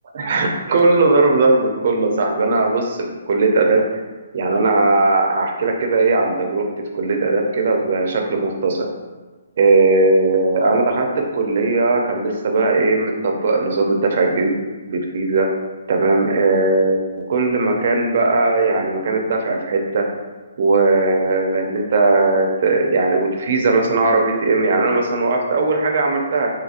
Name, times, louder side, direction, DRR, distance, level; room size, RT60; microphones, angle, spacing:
voice 1, 0.1-3.0 3.3-3.8 4.3-6.7 6.9-8.9 9.6-11.1 11.3-14.5 14.8-15.5 15.9-17.0 17.3-20.0 20.6-26.5, right 3 dB, 55° right, 2 dB, 0.5 m, -18 dB
2.8 x 2.7 x 2.4 m, 1.3 s
hypercardioid pair, 150°, 0 cm